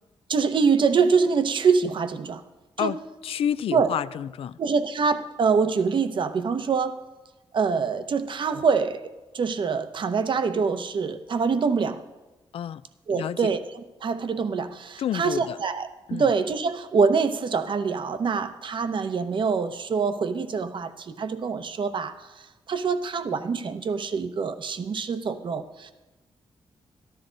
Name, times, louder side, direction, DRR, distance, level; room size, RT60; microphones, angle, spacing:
voice 1, 0.3-2.4 2.8-2.9 3.7-3.9 4.6-6.9 7.5-12.0 13.1-25.9, right 5 dB, 55° right, 10 dB, 0.9 m, -25 dB
voice 2, 3.2-4.6 12.5-12.8 13.1-13.4 15.0-15.6 16.1-16.3, left 9 dB, 75° left, 16 dB, 0.4 m, -29 dB
13.5 x 12.5 x 3.9 m, 1.1 s
cardioid pair, 95°, 10 cm